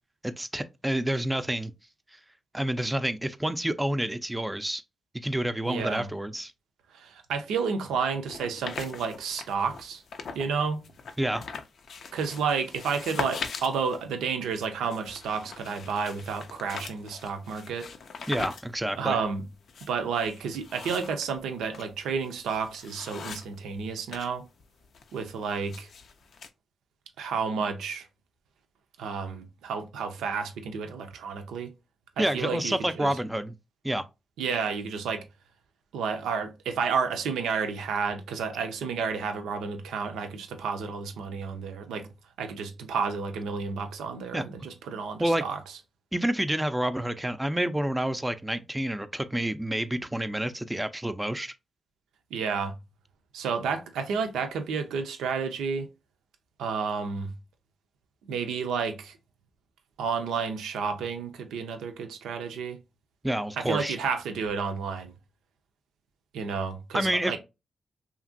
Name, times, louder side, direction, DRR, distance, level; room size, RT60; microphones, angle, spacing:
voice 1, 0.2-1.7 2.5-4.8 5.2-6.5 11.2-11.5 18.3-19.2 32.2-33.5 33.8-34.0 44.3-44.4 45.2-45.4 46.1-51.5 63.2-64.0 66.9-67.4, right 1 dB, 15° right, 0.4 m, -28 dB
voice 2, 5.7-6.1 6.9-10.0 10.3-10.8 12.1-17.9 18.9-19.4 19.8-24.5 25.1-25.9 27.2-28.1 29.0-31.7 32.2-33.1 34.4-35.2 35.9-42.1 42.4-45.6 52.3-52.7 53.3-55.9 56.6-57.3 58.3-59.2 60.0-62.8 63.6-65.1 66.3-67.4, right 5 dB, 90° right, 0.5 m, -31 dB
sound 1, 8.3-10.5 10.8-24.3 24.6-26.5, left 5 dB, 75° left, 0.4 m, -41 dB
2.8 x 2.5 x 2.5 m
supercardioid pair, 45°, 0 cm